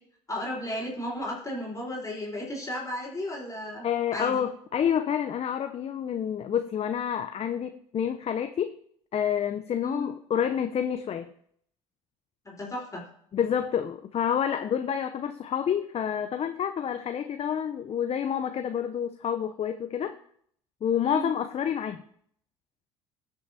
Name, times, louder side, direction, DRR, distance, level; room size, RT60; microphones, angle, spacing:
voice 1, 0.3-3.8 4.1-4.4 9.8-10.1 12.4-13.0 21.0-21.3, equal, 20° left, -4 dB, 3.7 m, -34 dB
voice 2, 3.8-8.8 9.1-11.3 13.3-20.2 20.8-22.0, left 8 dB, 40° left, 8 dB, 0.6 m, -28 dB
16.5 x 6.2 x 2.7 m, 0.64 s
hypercardioid pair, 60°, 17 cm